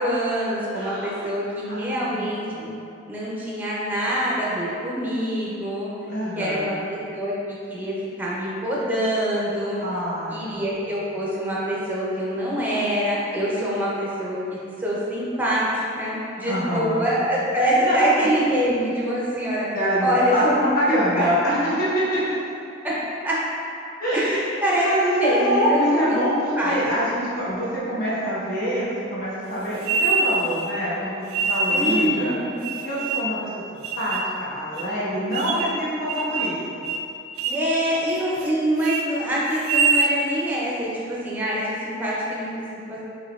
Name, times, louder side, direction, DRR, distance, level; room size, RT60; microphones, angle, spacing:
voice 1, 0.0-2.7 3.1-5.9 6.4-9.8 10.3-14.4 14.8-19.7 20.0-21.3 23.2-23.4 24.1-24.9 25.2-26.2 26.5-26.8 27.1-27.2 31.7-32.7 37.4-43.0, equal, 10° right, -6 dB, 0.6 m, -25 dB
voice 2, 0.7-1.2 1.7-2.8 6.1-6.8 9.8-10.5 16.4-17.1 17.7-18.3 19.7-22.2 24.0-24.4 24.8-32.3 32.8-33.4 33.7-36.8, equal, 45° left, -9 dB, 1.1 m, -25 dB
sound 1, 29.8-30.7 31.3-32.1 32.6-33.4 33.8-34.3 34.8-34.9 35.3-35.8 36.1-36.6 36.9-37.1 37.4-37.7 38.1-38.5 38.8-39.0 39.5-40.1, right 3 dB, 80° right, 0.3 m, -24 dB
5.5 x 2.9 x 2.4 m, 2.7 s
head